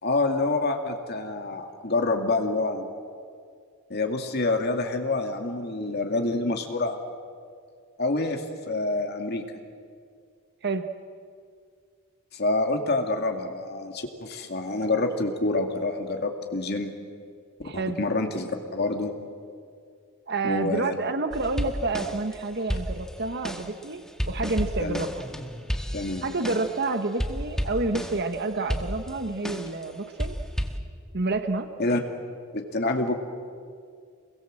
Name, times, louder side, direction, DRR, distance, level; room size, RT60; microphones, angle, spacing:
voice 1, 0.0-2.9 3.9-7.0 8.0-9.4 12.3-16.9 17.7-19.1 20.4-20.9 24.8-25.0 25.9-26.3 31.8-32.0 32.5-33.2, left 2 dB, 50° left, 4 dB, 2.2 m, -27 dB
voice 2, 17.6-18.0 20.3-25.2 26.2-30.4 31.1-31.7, right 3 dB, 50° right, 8 dB, 1.2 m, -29 dB
sound 1, 21.3-22.3 22.7-26.9 27.2-28.3 28.7-29.9 30.2-30.8, equal, 5° left, 1.6 m, -32 dB
29.0 x 22.5 x 7.6 m, 2.2 s
head